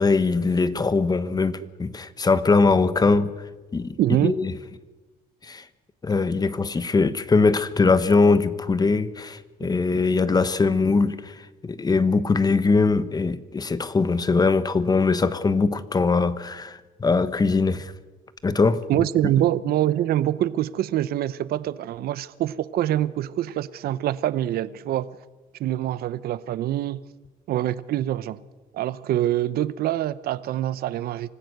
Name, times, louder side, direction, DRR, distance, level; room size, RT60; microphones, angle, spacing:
voice 1, 0.0-3.3 3.7-3.9 4.2-4.5 5.4-5.6 6.0-11.4 11.6-17.9 18.4-19.0 19.4-19.5, left 4 dB, 25° left, 1.1 m, -21 dB
voice 2, 4.0-4.3 18.9-25.1 25.6-27.0 27.5-28.4 28.7-31.3, right 13 dB, 65° right, 0.8 m, -25 dB
25.5 x 15.5 x 6.7 m
cardioid pair, 110°, 17 cm